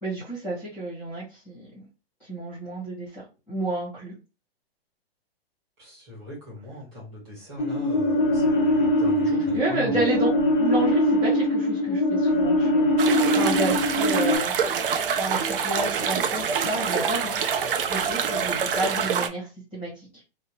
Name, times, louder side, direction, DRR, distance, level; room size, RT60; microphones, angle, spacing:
voice 1, 0.0-1.8 2.2-3.2 3.5-4.1 9.5-10.3 10.6-12.9 13.3-14.5 15.2-17.4 17.9-20.1, right 2 dB, 5° left, -10 dB, 0.9 m, -30 dB
voice 2, 5.8-10.0, left 1 dB, 25° right, -6 dB, 1.3 m, -39 dB
sound 1, 7.6-14.4, left 1 dB, 50° left, 0.6 m, -22 dB
sound 2, 13.0-19.3, right 7 dB, 60° right, 0.5 m, -26 dB
2.8 x 2.1 x 2.8 m, 0.30 s
hypercardioid pair, 175°, 31 cm